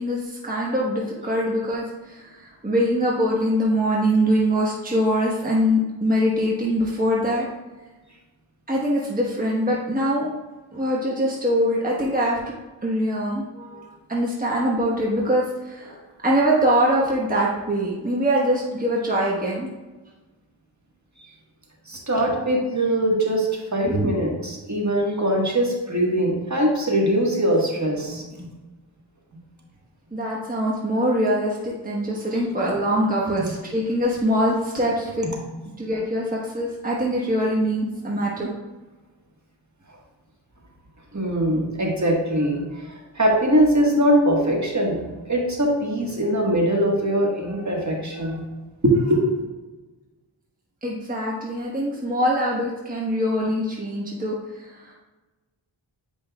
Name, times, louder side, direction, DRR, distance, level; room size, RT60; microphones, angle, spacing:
voice 1, 0.0-7.5 8.7-10.3 10.7-12.5 12.8-15.9 16.2-19.7 22.2-22.3 23.8-24.1 30.1-35.3 35.8-38.5 50.8-54.9, equal, 15° right, -4 dB, 1.3 m, -23 dB
voice 2, 21.9-28.5 33.4-33.5 41.1-48.4 48.8-49.3, right 1 dB, 35° right, -1 dB, 1.7 m, -22 dB
8.9 x 5.1 x 2.4 m, 1.2 s
cardioid pair, 45°, 48 cm